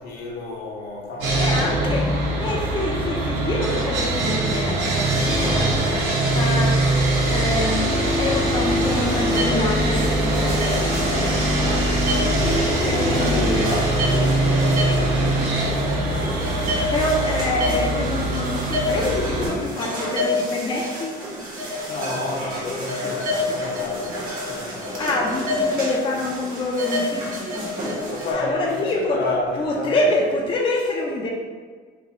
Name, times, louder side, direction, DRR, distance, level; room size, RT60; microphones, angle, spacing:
voice 1, 0.0-2.0 12.3-15.5 21.9-24.2 24.4-25.6 28.0-30.1, left 2 dB, 60° left, -2 dB, 0.9 m, -30 dB
Sawing, 1.2-19.5, right 1 dB, 90° right, 0.9 m, -22 dB
voice 2, 1.4-7.0 7.2-11.8 12.7-13.8 16.6-21.2 25.0-28.0 28.3-29.2 29.6-31.3, left 2 dB, 30° left, -2 dB, 0.4 m, -26 dB
sound 1, 8.6-28.3, left 1 dB, 55° right, 1.1 m, -29 dB
3.0 x 2.6 x 3.7 m, 1.5 s
cardioid pair, 110°, 17 cm